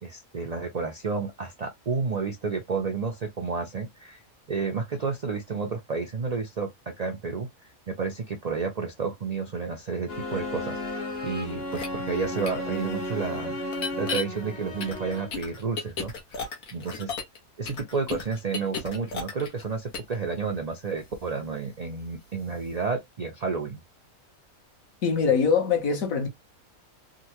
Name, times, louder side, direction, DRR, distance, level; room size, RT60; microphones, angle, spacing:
voice 1, 0.0-4.2 4.5-6.7 7.0-7.5 7.9-10.8 11.2-13.6 14.0-17.2 17.6-23.8, right 4 dB, 70° right, 0.3 m, -31 dB
sound 1, 10.1-15.5, left 1 dB, 35° left, 0.8 m, -34 dB
sound 2, 11.7-11.9 12.5-12.6 13.7-14.2 14.8-17.4 17.7-19.6 19.9-20.1, left 5 dB, 85° left, 1.5 m, -33 dB
voice 2, 25.0-26.3, left 6 dB, 70° left, 1.4 m, -23 dB
3.7 x 2.2 x 2.9 m
omnidirectional pair, 1.5 m